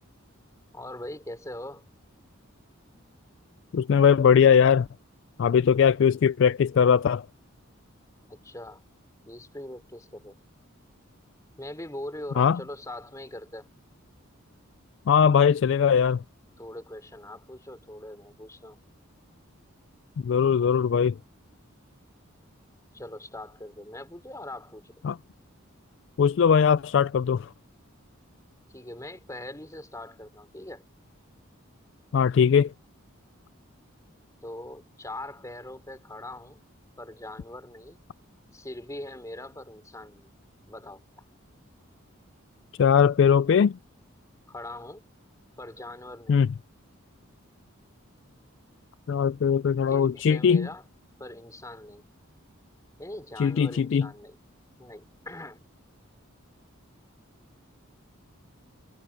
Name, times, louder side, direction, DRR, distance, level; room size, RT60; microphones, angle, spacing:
voice 1, 0.7-1.9 8.3-8.8 9.2-10.4 11.6-13.7 16.6-18.8 22.9-24.9 28.7-30.8 34.4-36.6 37.0-38.0 38.5-40.3 40.7-41.0 44.5-45.1 45.6-46.5 49.9-50.8 51.2-52.0 53.0-54.4 54.8-55.6, left 1 dB, 15° left, 3.4 m, -41 dB
voice 2, 3.7-4.9 5.4-7.3 12.4-12.6 15.1-16.2 20.2-21.1 25.0-25.2 26.2-27.5 32.1-32.7 42.8-43.8 46.3-46.5 49.1-50.7 53.4-54.1, left 7 dB, 60° left, 0.3 m, -20 dB
head